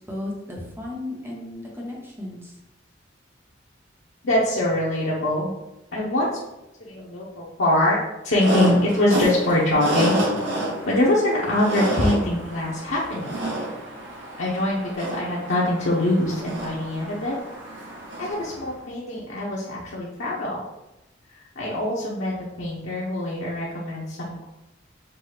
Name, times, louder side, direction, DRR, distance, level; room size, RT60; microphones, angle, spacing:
voice 1, 0.1-2.6, left 1 dB, 10° right, -2 dB, 1.0 m, -34 dB
voice 2, 4.2-5.5 5.9-6.3 6.8-8.0 8.2-10.2 10.9-13.4 14.4-17.3 17.7-17.9 18.2-20.6 21.3-24.4, left 1 dB, 90° left, -5 dB, 0.8 m, -23 dB
sound 1, 8.4-18.7, equal, 80° right, 1.1 m, -30 dB
5.8 x 2.3 x 3.3 m, 0.96 s
head